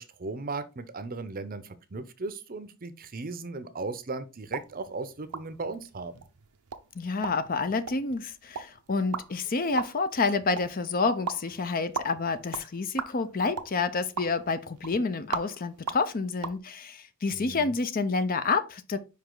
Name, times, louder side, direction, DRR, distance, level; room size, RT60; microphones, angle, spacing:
voice 1, 0.0-6.1 17.3-17.7, right 3 dB, 40° right, 0.7 m, -37 dB
sound 1, 4.4-16.6, right 6 dB, 85° right, 0.7 m, -40 dB
voice 2, 6.9-19.0, left 4 dB, 40° left, 0.6 m, -29 dB
5.2 x 5.1 x 3.8 m
head